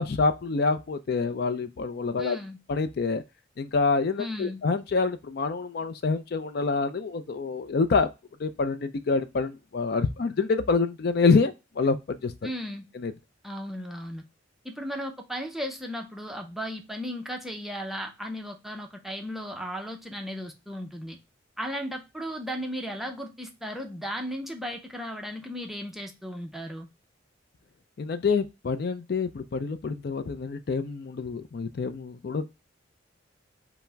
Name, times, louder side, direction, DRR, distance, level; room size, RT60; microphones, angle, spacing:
voice 1, 0.0-2.4 2.7-3.2 3.6-8.1 8.4-12.3 12.9-13.1 28.0-32.5, left 4 dB, 55° left, 0.4 m, -26 dB
voice 2, 2.2-2.6 4.2-4.6 12.4-12.8 13.4-14.2 14.6-21.2 21.6-26.9, equal, ahead, 0.5 m, -35 dB
5.6 x 2.1 x 4.4 m
head